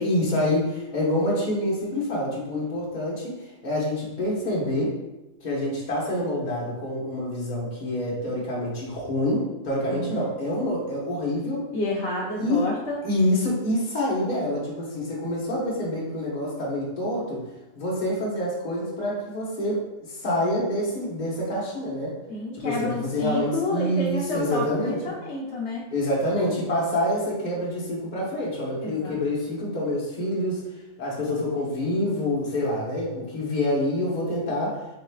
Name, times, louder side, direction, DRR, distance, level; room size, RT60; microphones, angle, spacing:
voice 1, 0.0-5.0 5.4-11.7 12.4-12.7 13.0-17.4 17.7-22.2 22.5-25.1 25.9-30.6 31.0-34.8, left 1 dB, 35° left, -5 dB, 1.3 m, -27 dB
voice 2, 11.7-13.0 22.3-25.8 28.8-29.2, left 2 dB, 55° left, -6 dB, 1.0 m, -30 dB
5.0 x 4.0 x 2.4 m, 1.0 s
omnidirectional pair, 1.4 m